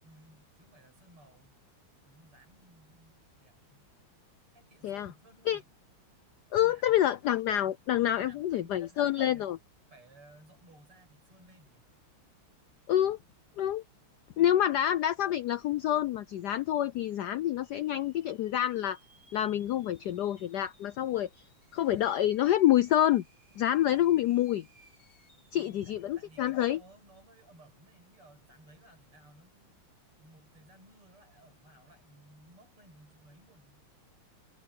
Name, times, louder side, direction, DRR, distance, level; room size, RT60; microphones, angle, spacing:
voice 1, 0.0-1.5 2.1-3.9 4.5-5.7 6.5-6.9 7.7-9.5 9.9-11.9 13.9-14.8 23.8-23.9 25.3-29.8 30.2-33.9, right 1 dB, 80° right, 9.0 m, -59 dB
voice 2, 6.5-9.6 12.9-13.2 13.6-13.8 14.4-19.0 19.3-21.3 21.7-23.2 23.6-24.7 25.5-26.8, left 12 dB, 80° left, 0.9 m, -27 dB
sound 1, 16.0-16.1 16.6-16.7 17.4-26.2, equal, 50° left, 8.0 m, -64 dB
omnidirectional pair, 2.4 m